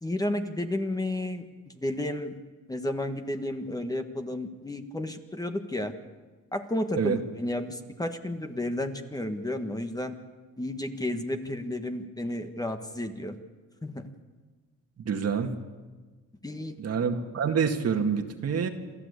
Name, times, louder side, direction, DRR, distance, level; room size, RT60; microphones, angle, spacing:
voice 1, 0.0-1.5 1.7-2.4 2.7-5.9 6.5-10.2 10.6-13.4 13.8-14.1 16.4-16.8, left 1 dB, 10° left, 6 dB, 1.6 m, -32 dB
voice 2, 15.0-15.5 16.8-18.7, right 6 dB, 55° right, 5 dB, 2.0 m, -27 dB
27.5 x 13.0 x 8.3 m, 1.3 s
cardioid pair, 90°, 30 cm